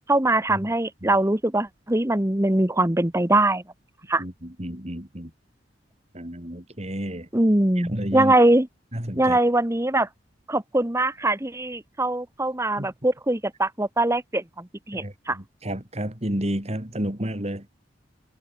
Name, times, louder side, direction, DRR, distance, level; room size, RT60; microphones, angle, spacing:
voice 1, 0.1-3.6 4.1-4.2 7.3-8.7 9.2-10.1 10.5-15.4, right 1 dB, 15° right, 1.4 m, -22 dB
voice 2, 4.2-5.3 6.1-7.3 7.8-8.3 8.9-9.4 12.8-12.9 14.9-17.7, right 1 dB, 35° right, 4.2 m, -31 dB
head